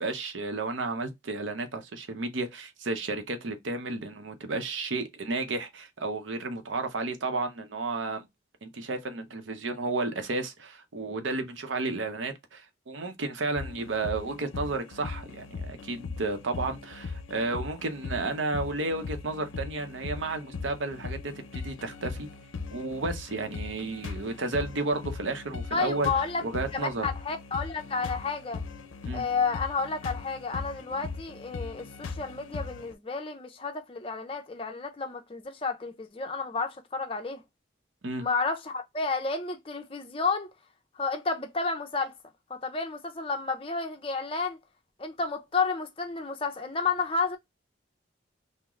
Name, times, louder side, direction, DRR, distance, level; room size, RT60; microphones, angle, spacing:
voice 1, 0.0-8.2 8.6-22.3 22.7-26.1 26.4-27.1 29.0-29.2 38.0-38.3, right 3 dB, 80° right, 0.7 m, -32 dB
sound 1, 13.6-32.9, left 4 dB, 85° left, 0.5 m, -39 dB
voice 2, 25.7-26.4 26.7-28.6 29.1-37.4 38.2-40.5 41.0-42.1 42.5-44.6 45.0-47.4, left 4 dB, 30° left, 0.6 m, -31 dB
3.7 x 2.1 x 2.9 m
head